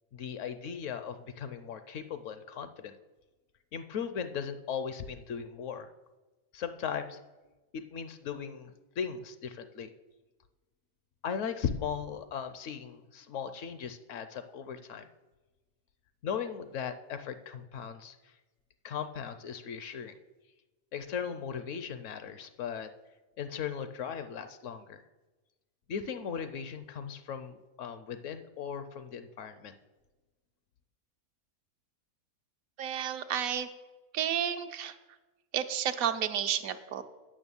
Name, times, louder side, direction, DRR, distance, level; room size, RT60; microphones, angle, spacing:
voice 1, 0.1-2.9 3.7-5.9 6.5-7.2 7.7-9.9 11.2-15.1 16.2-18.3 18.8-20.1 20.9-22.9 23.4-25.0 25.9-29.7, left 7 dB, 65° left, 10 dB, 0.8 m, -38 dB
voice 2, 32.8-33.7 34.1-34.9 35.5-37.0, right 9 dB, 75° right, 8 dB, 1.1 m, -31 dB
8.8 x 6.4 x 6.9 m, 1.2 s
omnidirectional pair, 1.5 m